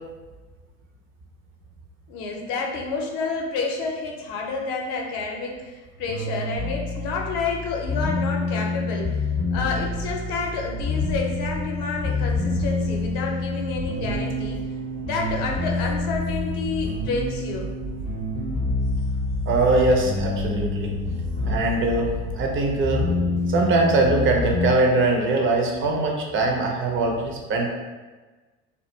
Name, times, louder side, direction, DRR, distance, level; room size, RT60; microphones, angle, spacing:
voice 1, 2.1-9.2 9.5-14.6 15.0-17.7 23.0-23.6, left 4 dB, 55° left, 0 dB, 0.7 m, -29 dB
sound 1, 6.1-24.7, left 3 dB, 20° left, 0.5 m, -28 dB
sound 2, 9.8-22.4, right 3 dB, 70° right, 0.8 m, -35 dB
voice 2, 19.5-20.9 21.4-23.1 23.5-27.7, right 2 dB, 30° right, 0 dB, 0.5 m, -22 dB
2.3 x 2.1 x 3.0 m, 1.3 s
figure-of-eight pair, 65°, 42 cm